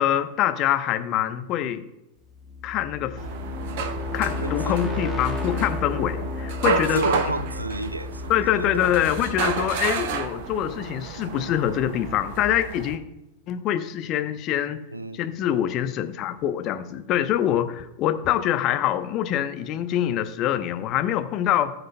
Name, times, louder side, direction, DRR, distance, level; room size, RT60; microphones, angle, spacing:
voice 1, 0.0-1.9 2.6-3.2 4.1-7.0 8.3-13.0 13.5-14.8 15.1-21.7, left 11 dB, 35° left, 0.9 m, -25 dB
sound 1, 2.3-11.2, left 3 dB, 5° right, 1.7 m, -33 dB
sound 2, 3.2-13.0, right 6 dB, 50° right, 0.9 m, -32 dB
voice 2, 4.3-5.1 6.6-8.9 14.9-15.2, right 1 dB, 85° right, 0.4 m, -30 dB
19.0 x 6.5 x 2.3 m
figure-of-eight pair, 90°, 0 cm